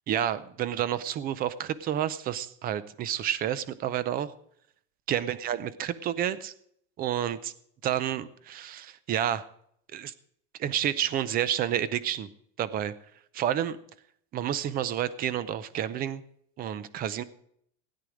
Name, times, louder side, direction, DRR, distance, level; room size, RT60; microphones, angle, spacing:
voice 1, 0.1-4.3 5.1-6.5 7.0-7.5 7.8-9.5 9.9-10.1 10.6-12.3 12.6-12.9 13.3-13.8 14.3-16.2 16.6-17.2, right 10 dB, 25° right, 17 dB, 0.5 m, -30 dB
17.0 x 9.4 x 5.0 m, 0.69 s
supercardioid pair, 155°, 37 cm